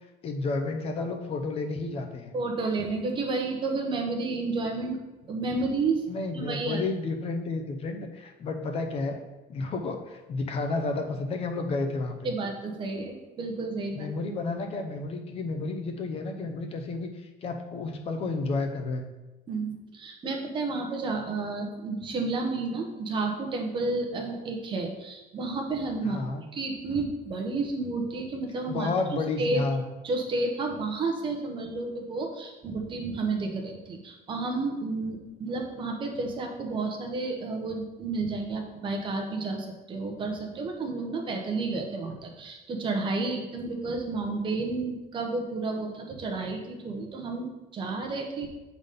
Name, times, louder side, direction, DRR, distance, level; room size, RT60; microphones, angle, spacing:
voice 1, 0.2-2.4 6.1-9.2 9.5-12.3 13.9-19.0 26.0-26.4 28.7-29.8, left 3 dB, 35° left, 5 dB, 0.7 m, -31 dB
voice 2, 2.3-5.0 5.3-6.0 6.3-6.8 12.2-14.1 19.5-26.2 26.5-28.9 29.4-29.6 30.0-48.5, right 3 dB, 25° right, 2 dB, 1.0 m, -31 dB
7.0 x 4.0 x 5.2 m, 1.1 s
cardioid pair, 180°, 18 cm